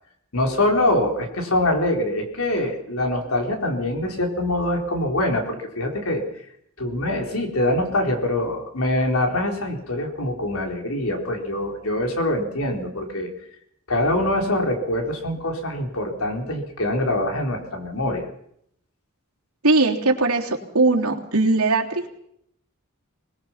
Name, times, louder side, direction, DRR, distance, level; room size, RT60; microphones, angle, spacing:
voice 1, 0.3-6.2 6.8-13.3 13.9-18.2, left 1 dB, 70° left, 3 dB, 4.2 m, -24 dB
voice 2, 19.6-22.1, right 3 dB, 80° right, -1 dB, 3.5 m, -20 dB
25.5 x 20.0 x 5.9 m, 0.72 s
head